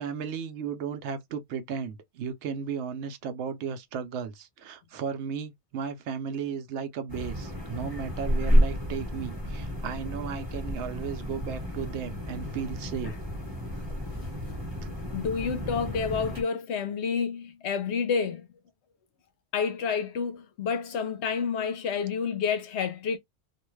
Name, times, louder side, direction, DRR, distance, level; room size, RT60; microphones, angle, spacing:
voice 1, 0.0-13.2 13.8-14.0, right 7 dB, 85° right, 0.9 m, -35 dB
sound 1, 7.1-16.4, equal, 20° right, 1.2 m, -30 dB
voice 2, 15.1-18.5 19.5-23.2, left 6 dB, 80° left, 0.9 m, -29 dB
2.5 x 2.3 x 3.1 m
omnidirectional pair, 1.1 m